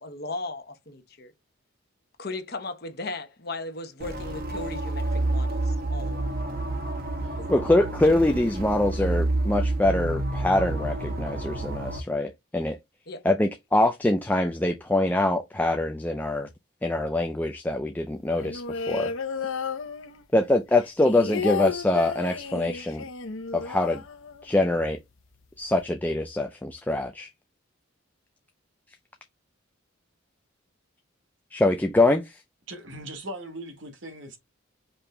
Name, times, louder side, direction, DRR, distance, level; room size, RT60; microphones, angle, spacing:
voice 1, 0.0-1.3 2.2-6.4 7.4-7.5 9.0-9.1 13.1-13.2, left 2 dB, 50° left, 1.0 m, -37 dB
sound 1, 4.0-12.0, right 2 dB, 45° right, 1.1 m, -29 dB
voice 2, 7.5-12.8 13.2-16.5 16.8-19.1 20.3-23.0 23.5-24.0 24.4-25.0 25.6-27.3 31.5-32.4, left 2 dB, 10° left, 0.3 m, -24 dB
sound 2, 18.3-20.4 20.7-24.7 25.0-25.1 25.3-25.8, left 5 dB, 75° left, 0.7 m, -33 dB
voice 3, 32.7-34.4, right 1 dB, 65° right, 1.3 m, -39 dB
5.3 x 3.0 x 3.3 m
head